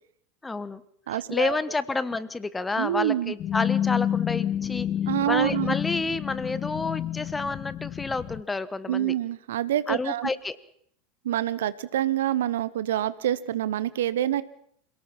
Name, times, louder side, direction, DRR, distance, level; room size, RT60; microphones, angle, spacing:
voice 1, 0.4-0.8 1.1-4.9 5.2-9.1 9.9-10.6, left 3 dB, 15° left, 16 dB, 1.2 m, -29 dB
voice 2, 1.1-1.6 2.8-3.3 5.1-5.7 8.9-10.3 11.2-14.4, right 12 dB, 70° right, 17 dB, 0.9 m, -26 dB
sound 1, 3.4-8.4, left 10 dB, 35° left, 0.8 m, -29 dB
27.0 x 18.0 x 5.8 m, 0.66 s
figure-of-eight pair, 80°, 0 cm